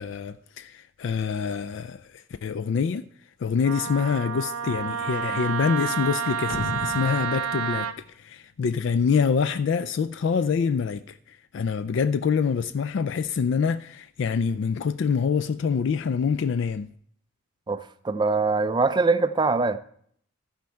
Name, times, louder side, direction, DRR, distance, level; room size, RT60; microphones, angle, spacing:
voice 1, 0.0-3.0 3.4-7.9 8.2-16.9, left 6 dB, 55° left, 0.3 m, -26 dB
Wind instrument woodwind instrument, 3.6-8.0, right 7 dB, 80° right, 0.6 m, -29 dB
sound 1, 6.5-9.0, left 3 dB, 85° left, 0.7 m, -36 dB
voice 2, 17.7-19.8, right 3 dB, 20° right, 0.4 m, -23 dB
14.0 x 5.2 x 4.4 m
head